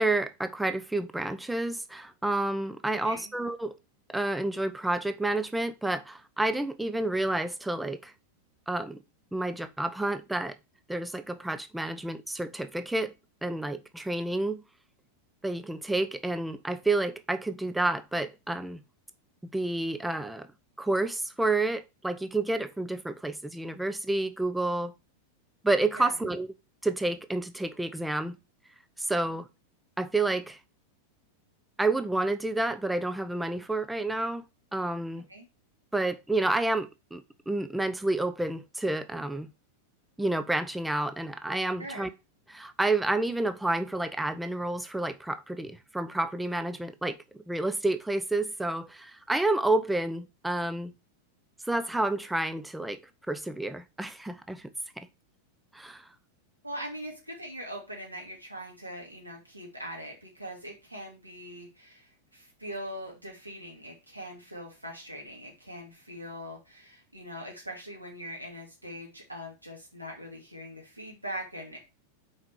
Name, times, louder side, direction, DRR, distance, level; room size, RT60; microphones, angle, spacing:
voice 1, 0.0-3.8 4.1-8.1 8.7-9.0 9.3-10.6 10.9-13.1 13.4-14.6 15.4-18.8 19.5-20.5 20.8-24.9 25.6-26.5 26.8-28.4 29.0-29.5 30.0-30.6 31.8-34.4 34.7-35.3 35.9-39.5 40.2-42.1 42.5-47.2 47.5-50.9 51.7-53.0 53.3-54.7 55.0-55.1 55.7-56.0, right 2 dB, 5° right, 0.5 m, -29 dB
voice 2, 41.8-42.1 56.6-71.8, equal, 85° right, 2.8 m, -41 dB
5.7 x 4.8 x 4.7 m
figure-of-eight pair, 90°, 0 cm